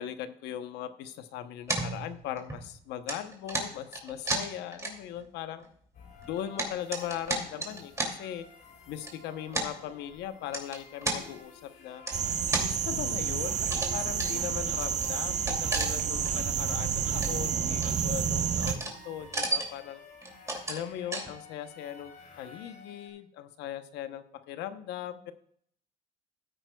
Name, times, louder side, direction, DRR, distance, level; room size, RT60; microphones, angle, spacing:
voice 1, 0.0-5.6 6.3-8.5 8.9-12.0 12.6-20.0 20.7-25.3, left 11 dB, 90° left, 10 dB, 0.9 m, -39 dB
sound 1, 1.7-2.7 3.1-5.3 5.6-5.7 6.2-8.1 9.0-9.1 9.5-9.7 10.5-11.2 12.1-12.7 13.6-13.9 14.2-14.3 14.7-14.8 15.0-16.3 16.6-16.7 17.0-17.5 17.8-18.3 18.6-19.0 19.2-19.8 20.2-20.8 21.1-21.3, right 2 dB, 15° right, 2.6 m, -33 dB
sound 2, 5.9-23.1, left 4 dB, 65° left, 3.1 m, -52 dB
sound 3, 12.1-18.7, right 7 dB, 45° right, 0.8 m, -29 dB
15.5 x 9.0 x 2.3 m, 0.65 s
cardioid pair, 110°, 17 cm